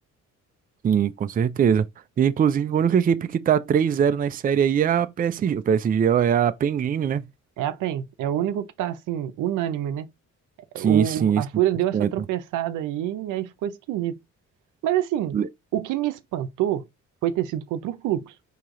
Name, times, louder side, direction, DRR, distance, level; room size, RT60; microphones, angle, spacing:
voice 1, 0.8-1.9 2.2-7.2 10.8-11.4 11.9-12.1 15.3-15.5, right 8 dB, 30° right, 0.4 m, -21 dB
voice 2, 7.6-10.1 10.7-14.2 14.8-15.4 15.7-16.8 17.2-18.3, right 12 dB, 90° right, 0.6 m, -26 dB
4.7 x 2.9 x 3.7 m
cardioid pair, 90°, 30 cm